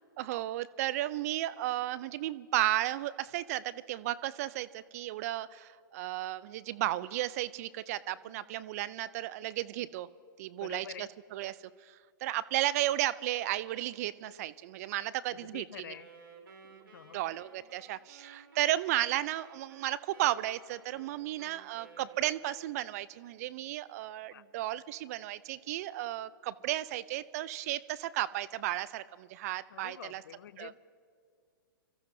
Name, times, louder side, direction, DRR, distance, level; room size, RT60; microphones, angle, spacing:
voice 1, 0.2-10.1 10.4-11.6 11.8-15.9 17.1-30.2 30.6-30.7, right 14 dB, 45° right, 17 dB, 0.5 m, -34 dB
voice 2, 10.6-11.1 15.3-16.1 16.9-17.2 24.2-24.4 29.7-30.8, left 9 dB, 65° left, 16 dB, 0.6 m, -47 dB
Wind instrument woodwind instrument, 15.9-22.8, right 5 dB, 75° right, 2.2 m, -56 dB
28.0 x 14.0 x 2.7 m, 2.1 s
hypercardioid pair, 120°, 12 cm